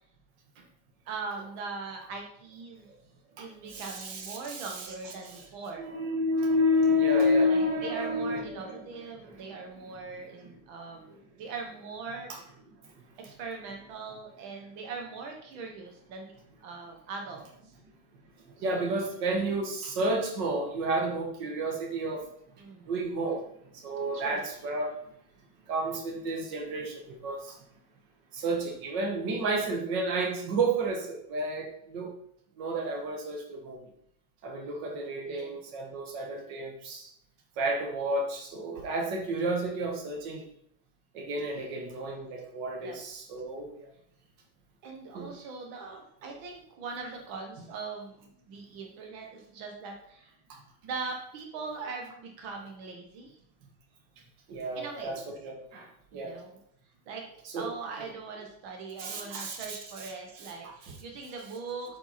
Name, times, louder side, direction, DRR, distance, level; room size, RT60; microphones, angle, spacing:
voice 1, 1.1-2.9 3.4-5.9 7.5-12.5 13.2-16.3 16.6-17.7 18.6-18.9 22.6-22.9 24.1-24.4 35.2-35.6 42.8-43.0 44.8-50.3 50.8-53.4 54.7-55.2 56.1-56.6 57.1-57.2 57.5-62.0, right 4 dB, 80° right, 2 dB, 1.1 m, -41 dB
voice 2, 3.4-4.9 5.2-5.4 5.8-8.9 9.2-9.6 9.8-10.0 10.4-10.5 11.1-11.2 12.8-13.0 18.6-22.3 22.8-23.5 23.7-24.9 25.7-27.6 28.3-32.1 32.6-33.8 34.4-37.1 37.6-40.5 41.1-43.9 45.1-45.3 50.5-50.6 54.5-56.3 57.4-57.7 59.0-60.9, equal, 50° right, 2 dB, 1.5 m, -31 dB
7.9 x 7.9 x 4.1 m, 0.71 s
omnidirectional pair, 3.8 m